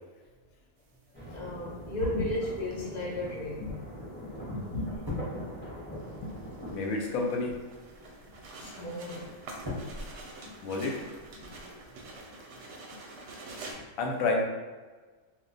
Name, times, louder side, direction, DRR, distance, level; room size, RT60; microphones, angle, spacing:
sound 1, 0.9-1.0 2.2-3.0 3.3-3.4 3.8-3.9 4.3-4.7 5.1-13.7, right 2 dB, 65° right, 0.8 m, -47 dB
sound 2, 1.1-6.7, equal, 10° left, 0.9 m, -42 dB
voice 1, 1.3-3.8 8.6-9.4, left 1 dB, 55° left, -2 dB, 0.5 m, -35 dB
sound 3, 1.4-12.2, left 2 dB, 20° right, 0.6 m, -46 dB
voice 2, 4.5-5.0 6.2-6.3 6.7-7.5 10.6-10.9 14.0-14.4, left 3 dB, 85° left, 1 dB, 1.0 m, -30 dB
2.3 x 2.2 x 3.8 m, 1.3 s
omnidirectional pair, 1.4 m